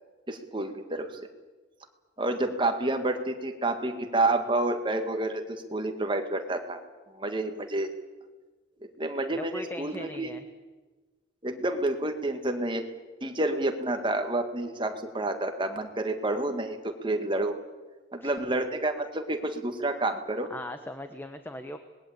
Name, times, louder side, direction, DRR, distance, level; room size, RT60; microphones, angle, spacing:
voice 1, 0.3-1.1 2.2-6.8 7.1-7.9 9.0-10.3 11.4-12.8 13.2-17.5 18.1-20.5, right 2 dB, 25° right, 6 dB, 1.9 m, -29 dB
voice 2, 9.3-10.4 18.2-18.3 20.5-21.8, left 1 dB, 10° left, 7 dB, 1.1 m, -39 dB
25.5 x 20.0 x 8.7 m, 1.3 s
head